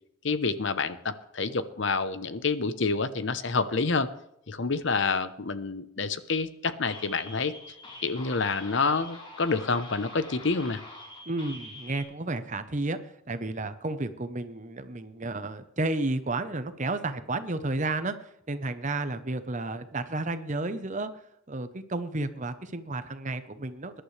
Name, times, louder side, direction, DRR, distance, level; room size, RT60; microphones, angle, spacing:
voice 1, 0.2-4.1 4.5-7.5 8.0-10.8, left 4 dB, 60° left, 12 dB, 0.9 m, -28 dB
sound 1, 6.9-12.0, left 1 dB, 25° left, 4.0 m, -45 dB
voice 2, 11.3-13.0 13.3-21.1 21.5-24.0, right 2 dB, 35° right, 11 dB, 0.9 m, -32 dB
21.0 x 11.5 x 3.3 m, 0.77 s
head